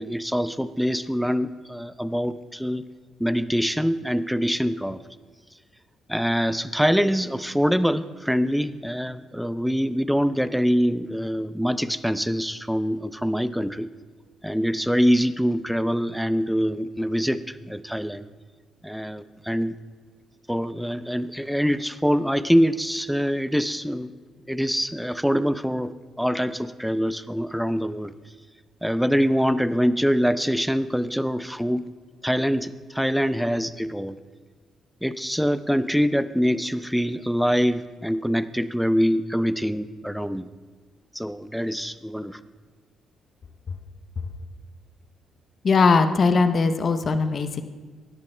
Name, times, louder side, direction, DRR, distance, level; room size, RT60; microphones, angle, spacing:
voice 1, 0.0-2.8 3.2-5.0 6.1-13.9 14.4-18.2 18.8-19.7 20.5-24.1 24.5-28.1 28.8-31.9 32.2-34.2 35.0-40.5 41.1-42.4, equal, ahead, 14 dB, 0.5 m, -24 dB
voice 2, 45.6-47.6, left 4 dB, 50° left, 9 dB, 0.8 m, -20 dB
17.0 x 10.5 x 2.2 m, 1.4 s
hypercardioid pair, 50°, 0 cm